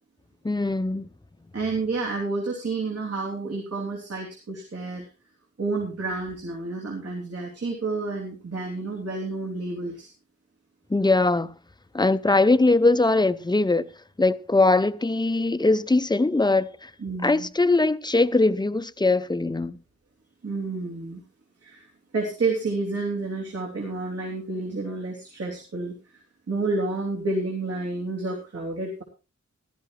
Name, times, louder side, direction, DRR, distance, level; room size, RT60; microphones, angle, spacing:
voice 1, 0.4-1.1 10.9-11.5 11.9-13.9 14.2-16.9 17.2-19.8, left 2 dB, 15° left, 0.6 m, -21 dB
voice 2, 1.5-5.1 5.6-10.1 17.0-17.5 20.4-21.2 21.6-21.9 22.1-25.9 26.5-29.0, right 3 dB, 55° right, 3.3 m, -30 dB
15.5 x 13.0 x 3.2 m
wide cardioid pair, 85°, 29 cm